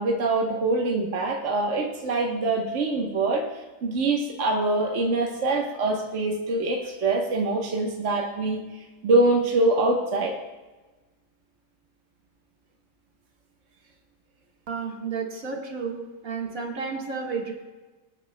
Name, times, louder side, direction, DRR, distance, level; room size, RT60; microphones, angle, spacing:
voice 1, 0.0-3.4 3.8-10.3, right 2 dB, 60° right, 0 dB, 1.4 m, -24 dB
voice 2, 14.7-17.5, right 5 dB, 80° right, 0 dB, 2.0 m, -32 dB
25.0 x 9.4 x 2.2 m, 1.2 s
omnidirectional pair, 1.4 m